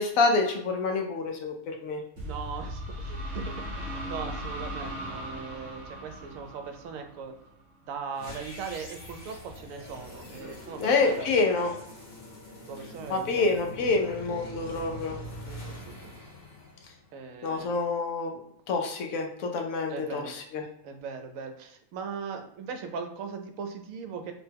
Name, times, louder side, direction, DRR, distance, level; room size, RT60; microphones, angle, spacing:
voice 1, 0.0-2.0 10.8-11.7 13.1-15.2 17.4-18.4 18.7-20.6, left 3 dB, 75° left, 3 dB, 1.0 m, -27 dB
sound 1, 2.2-7.8, equal, 35° right, 0.9 m, -38 dB
voice 2, 2.2-7.3 7.9-11.6 12.7-13.7 15.4-16.2 17.1-17.7 19.9-20.3 20.8-24.3, right 6 dB, 70° right, 5 dB, 0.9 m, -39 dB
sound 2, 8.1-17.3, equal, 45° left, 1.0 m, -43 dB
2.9 x 2.1 x 3.3 m, 0.74 s
omnidirectional pair, 1.5 m